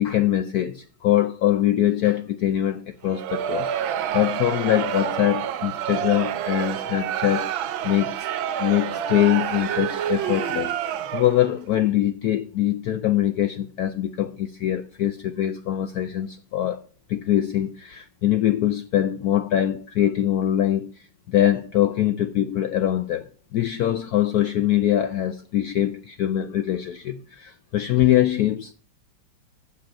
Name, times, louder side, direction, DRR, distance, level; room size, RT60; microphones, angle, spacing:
voice 1, 0.0-3.7 4.1-8.3 8.6-10.8 11.1-16.8 17.1-28.7, left 12 dB, 75° left, 0.8 m, -23 dB
Crowd, 3.0-11.5, right 10 dB, 80° right, 1.5 m, -28 dB
7.8 x 7.1 x 7.1 m
omnidirectional pair, 2.2 m